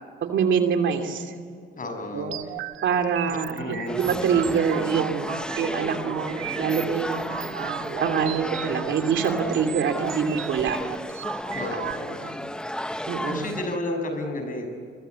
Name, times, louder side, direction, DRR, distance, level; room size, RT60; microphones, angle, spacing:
voice 1, 0.2-1.3 2.1-2.4 2.8-10.8 11.9-12.0 12.2-12.3 13.1-13.5, right 7 dB, 70° right, 5 dB, 2.8 m, -25 dB
voice 2, 1.8-2.3 3.3-4.0 7.3-7.4 11.5-12.4 13.3-14.7, left 2 dB, 45° left, 5 dB, 6.5 m, -32 dB
sound 1, 2.3-11.9, right 12 dB, 90° right, 1.0 m, -36 dB
sound 2, 3.9-13.8, left 1 dB, 5° left, 0.9 m, -33 dB
27.5 x 23.0 x 8.3 m, 2.2 s
cardioid pair, 90°, 20 cm